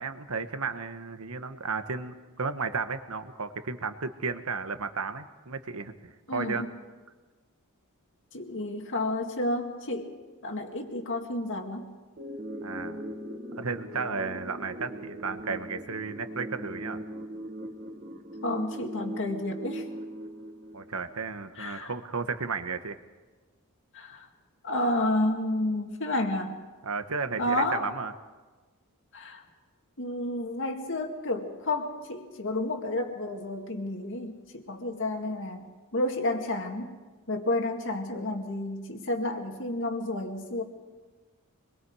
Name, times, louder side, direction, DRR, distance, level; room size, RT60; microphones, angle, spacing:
voice 1, 0.0-6.6 12.6-13.0 13.6-17.0 20.7-23.0 26.8-28.1, right 4 dB, 70° right, 9 dB, 1.2 m, -33 dB
voice 2, 6.3-6.7 8.3-10.1 10.4-11.9 18.4-19.9 21.6-21.9 23.9-24.3 24.6-26.6 27.4-27.9 29.1-29.4 30.0-36.9 37.3-40.6, left 1 dB, 60° left, 4 dB, 2.1 m, -31 dB
sound 1, 12.2-21.2, equal, 40° right, 2.4 m, -40 dB
25.5 x 21.5 x 4.8 m, 1.3 s
head